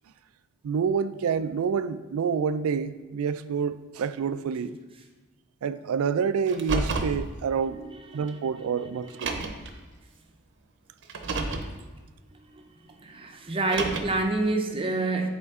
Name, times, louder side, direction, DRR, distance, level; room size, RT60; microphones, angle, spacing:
voice 1, 0.6-4.8 5.6-7.8 8.1-9.3, right 6 dB, 75° right, 0.3 m, -28 dB
Car, 6.5-7.2 8.3-8.4 9.1-9.7 11.0-11.7 13.5-14.3, right 3 dB, 60° right, 0.7 m, -30 dB
voice 2, 7.6-8.4 8.9-9.2 12.5-15.3, right 2 dB, 25° right, 0.6 m, -29 dB
9.4 x 4.4 x 3.6 m
head